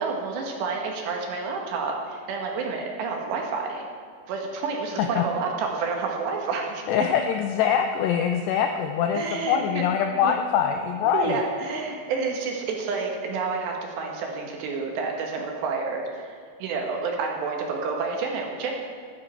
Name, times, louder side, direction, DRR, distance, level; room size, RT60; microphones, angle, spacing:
voice 1, 0.0-3.8 4.3-7.1 9.1-9.9 10.2-10.3 11.1-18.7, right 4 dB, 70° right, 1 dB, 3.3 m, -29 dB
voice 2, 6.9-11.4, left 8 dB, 85° left, 5 dB, 2.4 m, -24 dB
15.0 x 12.0 x 4.4 m, 2.1 s
omnidirectional pair, 5.6 m